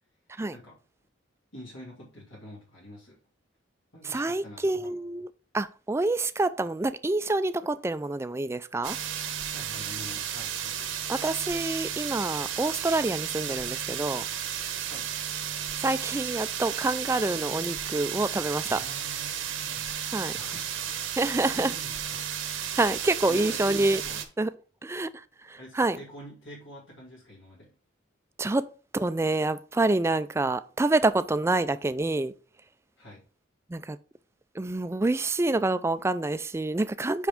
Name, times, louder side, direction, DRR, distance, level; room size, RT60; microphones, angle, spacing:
voice 1, 1.5-3.2 3.9-4.9 9.4-11.0 14.8-15.1 18.6-19.9 20.3-22.3 23.3-24.2 25.6-27.7 33.0-33.3, equal, 75° left, 2.3 m, -46 dB
voice 2, 4.0-5.3 5.5-9.0 11.1-14.2 15.8-18.8 20.0-20.3 21.2-21.7 22.8-24.0 24.4-24.5 24.8-26.0 28.4-28.7 28.9-32.3 33.7-34.0 34.6-37.3, right 2 dB, 15° right, 0.3 m, -27 dB
sound 1, 8.8-24.2, right 9 dB, 75° right, 1.0 m, -33 dB
5.8 x 5.3 x 3.6 m
head